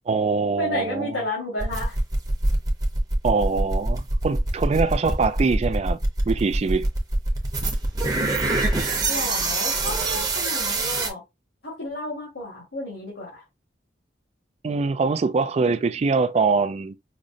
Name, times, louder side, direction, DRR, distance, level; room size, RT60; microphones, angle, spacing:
voice 1, 0.1-1.2 3.2-6.0 6.3-6.9 14.6-16.9, right 4 dB, 35° right, 0.3 m, -23 dB
voice 2, 0.6-2.0 8.8-11.2 11.6-13.4, left 1 dB, 75° left, 1.9 m, -32 dB
sound 1, 1.6-11.1, right 2 dB, 20° right, 0.7 m, -24 dB
5.0 x 2.1 x 2.6 m
head